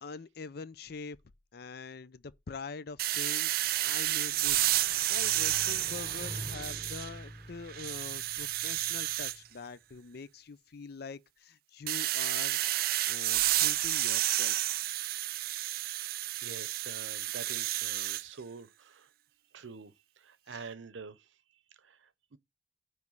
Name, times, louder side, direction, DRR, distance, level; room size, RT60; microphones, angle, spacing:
voice 1, 0.0-1.2 1.5-3.5 3.8-12.6 13.1-14.8 20.5-20.6, left 4 dB, 55° left, 0.5 m, -44 dB
sound 1, 3.0-7.3 7.7-9.4 11.9-18.2, right 15 dB, 50° right, 0.3 m, -31 dB
sound 2, 3.4-9.6, equal, 35° left, 4.8 m, -47 dB
voice 2, 16.4-19.1 19.5-21.3 21.8-22.4, right 5 dB, 75° right, 0.7 m, -47 dB
9.6 x 3.2 x 5.3 m
head